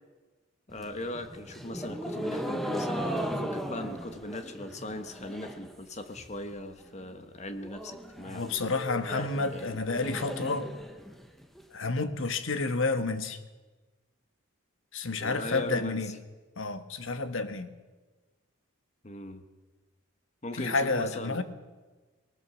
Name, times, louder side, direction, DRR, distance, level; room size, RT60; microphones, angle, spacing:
voice 1, 0.7-8.5 9.1-9.7 15.1-16.2 19.0-19.4 20.4-21.4, left 1 dB, 35° left, 9 dB, 1.3 m, -39 dB
sound 1, 0.7-5.7 6.0-6.5 6.9-7.0 7.2-7.3 7.6-11.6, equal, ahead, 1.3 m, -37 dB
voice 2, 8.2-10.7 11.7-13.4 14.9-16.1 16.6-17.7 20.5-21.4, left 3 dB, 80° left, 10 dB, 1.4 m, -30 dB
19.5 x 19.0 x 7.1 m, 1.3 s
head